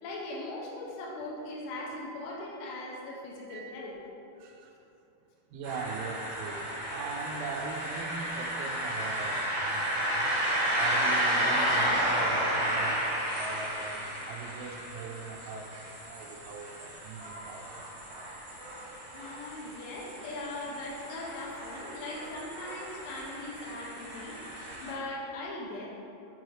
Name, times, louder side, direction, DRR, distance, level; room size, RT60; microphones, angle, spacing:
voice 1, 0.0-3.9 19.1-24.4 24.8-25.9, left 2 dB, 80° left, -4 dB, 2.6 m, -39 dB
voice 2, 4.4-4.7 5.5-17.9, right 4 dB, 85° right, 2 dB, 3.1 m, -41 dB
sound 1, 5.6-24.9, right 1 dB, 60° right, 2.0 m, -32 dB
7.7 x 4.6 x 3.1 m, 2.8 s
omnidirectional pair, 5.5 m